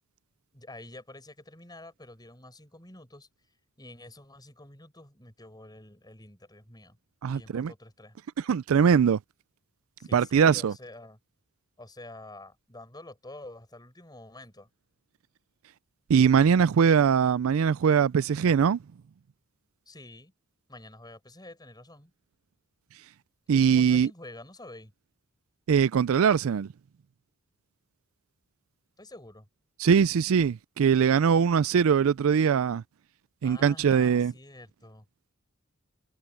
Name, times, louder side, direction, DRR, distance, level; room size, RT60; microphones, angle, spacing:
voice 1, 0.5-3.3 3.8-7.0 7.3-8.2 10.0-11.2 11.8-14.7 19.9-20.3 20.7-22.1 23.7-24.9 29.0-29.5 33.4-35.1, left 2 dB, 20° left, 7.8 m, -48 dB
voice 2, 7.2-7.7 8.5-9.2 10.1-10.7 16.1-18.8 23.5-24.1 25.7-26.7 29.8-32.8 33.4-34.3, right 7 dB, 65° right, 0.4 m, -22 dB
head